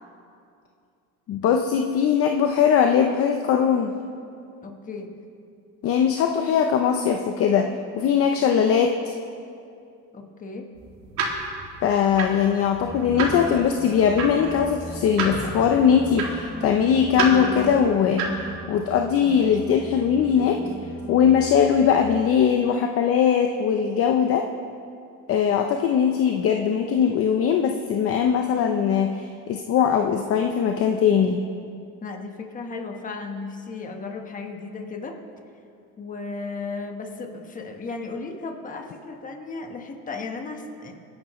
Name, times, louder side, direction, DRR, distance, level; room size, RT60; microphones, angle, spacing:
voice 1, 1.3-3.9 5.8-7.7 8.0-9.1 11.8-18.2 18.7-20.6 21.1-24.4 25.3-31.4, left 7 dB, 40° left, 4 dB, 0.7 m, -20 dB
voice 2, 4.6-5.1 10.1-10.7 32.0-35.2 36.0-40.9, left 3 dB, 25° left, 3 dB, 1.3 m, -35 dB
sound 1, 10.8-18.5, right 3 dB, 55° right, 2.5 m, -31 dB
sound 2, 12.8-22.0, equal, ahead, 0.7 m, -38 dB
24.5 x 10.5 x 3.1 m, 2.5 s
cardioid pair, 145°, 34 cm